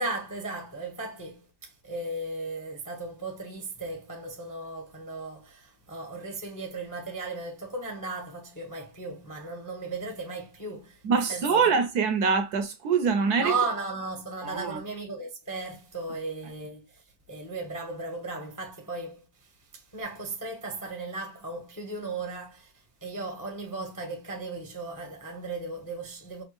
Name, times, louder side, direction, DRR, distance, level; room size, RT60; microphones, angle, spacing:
voice 1, 0.0-11.0 11.3-11.7 13.4-26.4, right 3 dB, 20° left, 0.5 m, -36 dB
voice 2, 11.0-13.5 14.4-14.8, right 5 dB, 70° right, 1.0 m, -24 dB
5.3 x 2.4 x 3.0 m
omnidirectional pair, 2.0 m